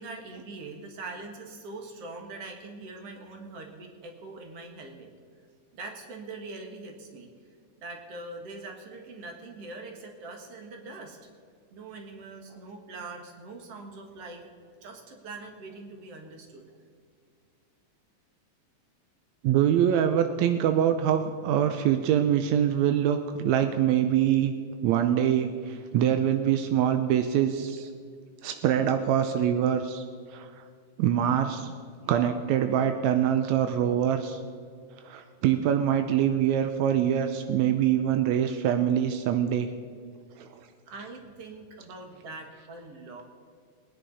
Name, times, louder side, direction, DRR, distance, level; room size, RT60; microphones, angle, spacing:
voice 1, 0.0-5.1 5.7-7.3 7.8-11.2 11.7-14.4 14.8-16.7 40.9-43.2, right 3 dB, 50° right, 2 dB, 2.5 m, -42 dB
voice 2, 19.4-24.5 24.8-27.9 28.4-30.0 30.3-30.5 31.0-31.7 32.1-34.4 35.0-39.7 40.4-40.5, right 10 dB, 80° right, 7 dB, 1.7 m, -24 dB
21.5 x 10.0 x 4.1 m, 2.1 s
omnidirectional pair, 3.9 m